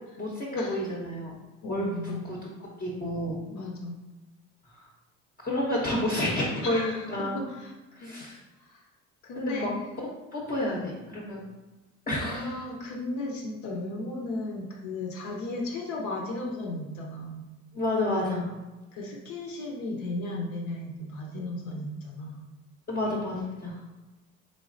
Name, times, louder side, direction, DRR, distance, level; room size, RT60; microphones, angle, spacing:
voice 1, 0.2-1.3 1.7-2.4 2.8-3.4 4.7-4.8 5.4-7.4 7.9-8.4 9.3-9.7 10.3-11.4 12.1-12.6 17.7-18.5 22.9-23.8, left 1 dB, 30° left, -4 dB, 0.7 m, -30 dB
voice 2, 1.6-2.4 3.5-4.0 6.6-8.3 8.6-8.8 9.2-9.7 12.2-17.4 18.9-22.4, left 2 dB, 65° left, -1 dB, 0.6 m, -35 dB
3.4 x 3.1 x 2.5 m, 1.1 s
supercardioid pair, 85°, 32 cm